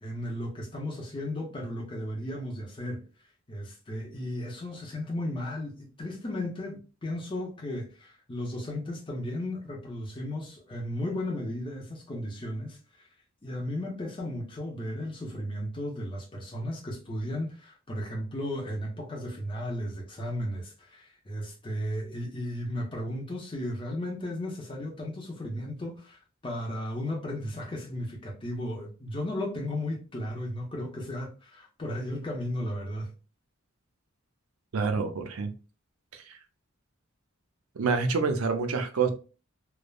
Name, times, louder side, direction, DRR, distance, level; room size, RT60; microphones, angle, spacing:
voice 1, 0.0-3.0 3.5-13.1 13.4-33.1, left 1 dB, 25° left, 0.6 m, -35 dB
voice 2, 34.7-35.5 36.1-36.2 37.8-39.1, right 4 dB, 80° right, 0.5 m, -27 dB
3.2 x 2.0 x 2.2 m
head